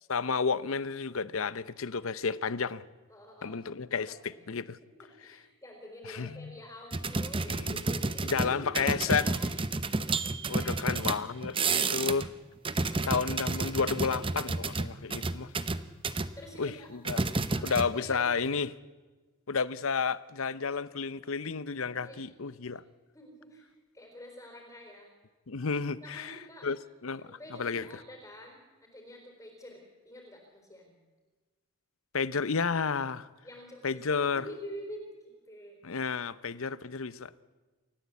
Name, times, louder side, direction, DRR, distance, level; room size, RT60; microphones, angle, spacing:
voice 1, 0.1-2.8 3.4-4.8 6.1-6.5 7.5-7.7 8.3-9.3 10.5-11.6 11.9-12.2 13.0-15.5 16.6-17.2 17.6-18.7 19.5-22.8 25.5-26.8 27.0-27.9 32.1-33.3 33.8-34.4 35.8-37.4, left 5 dB, 65° left, 0.7 m, -31 dB
voice 2, 3.1-3.6 4.1-4.4 4.8-9.5 10.4-11.2 11.8-11.9 16.4-16.9 17.4-18.3 22.0-22.8 23.1-23.7 23.9-25.1 26.0-26.7 27.2-30.9 33.4-35.8, equal, 15° left, 4.2 m, -47 dB
sound 1, 6.9-12.3 12.6-16.3 17.0-18.2 18.4-18.6, right 3 dB, 25° right, 0.8 m, -31 dB
28.5 x 14.0 x 8.3 m
head